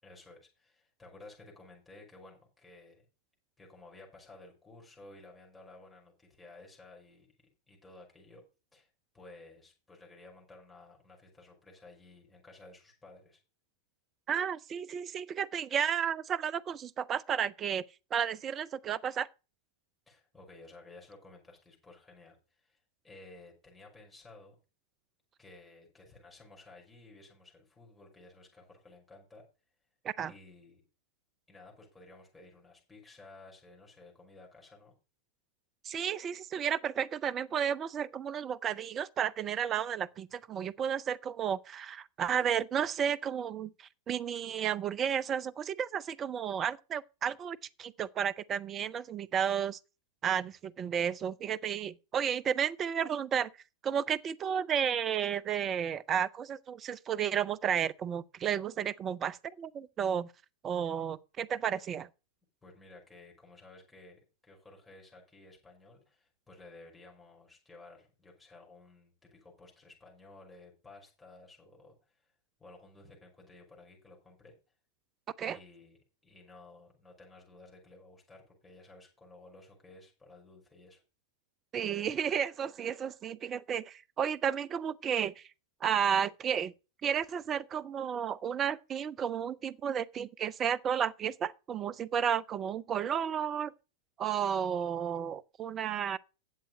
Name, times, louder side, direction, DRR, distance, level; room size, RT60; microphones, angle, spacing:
voice 1, 0.0-3.1 3.6-8.4 8.7-13.4 20.1-24.6 25.4-29.4 30.2-30.8 31.5-34.9 62.6-72.3 72.6-74.5 75.4-81.0, left 2 dB, 10° left, 5.8 m, -55 dB
voice 2, 14.3-17.8 18.1-19.3 30.0-30.3 35.8-49.8 50.2-53.5 53.8-60.3 60.6-62.1 75.4-75.6 81.7-85.4 85.8-86.7 87.0-93.7 94.2-96.2, right 8 dB, 25° right, 0.5 m, -32 dB
10.5 x 7.5 x 5.3 m
figure-of-eight pair, 95°, 0 cm